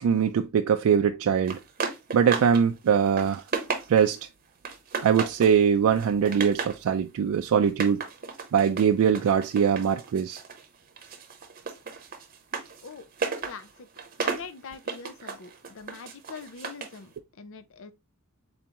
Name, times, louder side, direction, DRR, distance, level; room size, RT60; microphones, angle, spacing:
voice 1, 0.0-1.6 2.1-3.4 3.9-4.2 5.0-8.0 8.5-10.4, right 7 dB, 85° right, 0.3 m, -22 dB
sound 1, 1.5-2.6 3.0-4.2 4.6-5.6 5.9-6.8 7.6-10.7 11.0-17.0, right 5 dB, 45° right, 0.8 m, -34 dB
voice 2, 12.8-13.9 14.2-17.9, left 5 dB, 65° left, 0.5 m, -43 dB
3.9 x 3.5 x 2.8 m
head